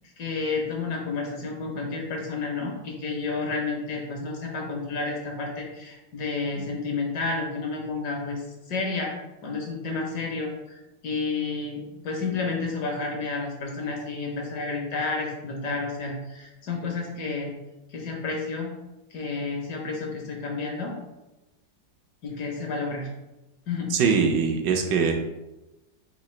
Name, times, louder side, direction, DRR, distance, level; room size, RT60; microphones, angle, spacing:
voice 1, 0.2-8.4 8.7-9.1 9.4-17.5 17.9-18.7 19.1-20.9 22.2-23.1 23.7-24.0, left 4 dB, 65° left, 0 dB, 1.3 m, -30 dB
voice 2, 23.9-25.1, right 5 dB, 75° right, 3 dB, 1.2 m, -22 dB
3.9 x 2.8 x 4.3 m, 1.0 s
omnidirectional pair, 2.0 m